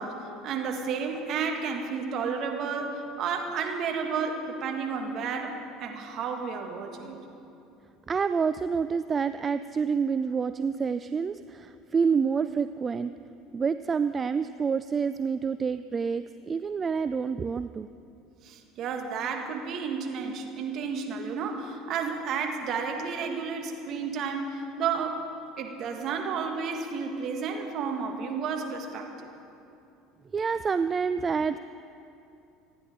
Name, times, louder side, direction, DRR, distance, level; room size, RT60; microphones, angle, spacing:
voice 1, 0.0-7.2 18.4-25.3 25.6-29.3, right 5 dB, 50° right, 3 dB, 2.0 m, -32 dB
voice 2, 8.1-13.1 13.5-17.9 30.3-31.6, right 5 dB, 30° right, 12 dB, 0.4 m, -28 dB
26.5 x 10.5 x 3.8 m, 2.7 s
hypercardioid pair, 70°, 0 cm